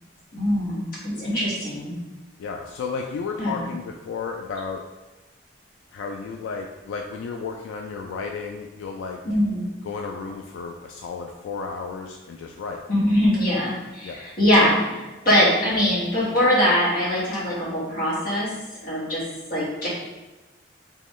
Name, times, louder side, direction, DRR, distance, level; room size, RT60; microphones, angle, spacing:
voice 1, 0.3-1.9 3.4-3.6 9.2-9.7 12.9-18.5 18.8-19.2 19.5-19.9, equal, 45° left, -7 dB, 1.3 m, -22 dB
voice 2, 2.4-4.8 5.9-9.2 9.8-12.8 14.0-14.2, left 5 dB, 85° left, 2 dB, 0.3 m, -33 dB
3.8 x 2.9 x 3.1 m, 1.1 s
head